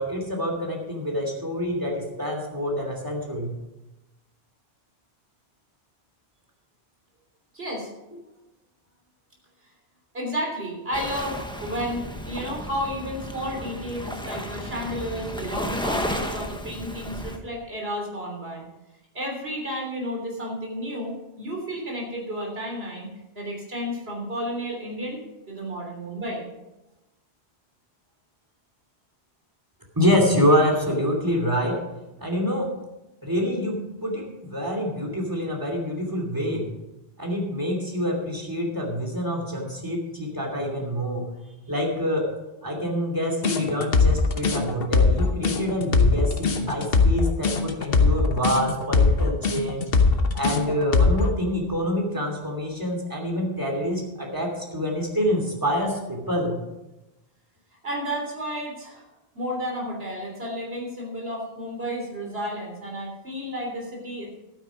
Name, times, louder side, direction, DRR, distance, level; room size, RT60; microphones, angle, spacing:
voice 1, 0.0-3.5 30.0-31.8 32.2-32.7 33.2-36.7 37.2-41.3 41.7-42.3 42.6-49.9 50.3-56.6, equal, 20° right, 0 dB, 2.7 m, -26 dB
voice 2, 7.5-7.9 10.1-18.7 19.1-23.1 23.3-26.5 41.4-41.5 57.8-59.1 59.3-64.3, equal, 65° right, -1 dB, 3.7 m, -32 dB
Waves surf, 10.9-17.4, equal, 5° left, 1.0 m, -33 dB
sound 1, 43.4-51.3, left 4 dB, 60° left, 1.2 m, -20 dB
12.5 x 9.2 x 5.1 m, 0.99 s
omnidirectional pair, 1.1 m